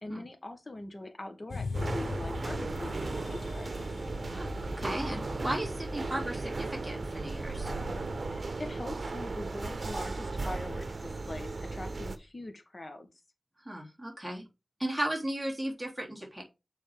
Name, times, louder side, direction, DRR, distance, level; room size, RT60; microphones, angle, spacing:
voice 1, 0.0-3.8 8.2-13.1, left 1 dB, 45° left, 6 dB, 1.7 m, -42 dB
sound 1, 1.5-8.4, left 4 dB, 80° left, 0.7 m, -42 dB
sound 2, 1.7-12.2, right 3 dB, 60° right, 0.9 m, -36 dB
voice 2, 4.8-7.7 13.7-14.4 14.8-16.4, right 1 dB, 5° right, -2 dB, 3.5 m, -35 dB
7.1 x 4.2 x 4.9 m, 0.26 s
wide cardioid pair, 55°, 0 cm